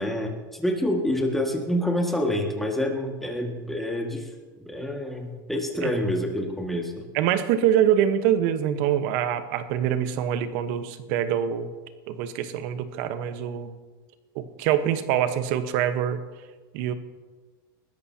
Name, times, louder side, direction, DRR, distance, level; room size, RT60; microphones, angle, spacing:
voice 1, 0.0-4.3 4.7-7.1, left 1 dB, ahead, 1 dB, 1.8 m, -27 dB
voice 2, 7.1-11.7 12.1-13.8 14.3-16.2 16.7-16.9, right 10 dB, 60° right, 10 dB, 1.1 m, -24 dB
20.0 x 13.5 x 2.8 m, 1.3 s
supercardioid pair, 140°, 11 cm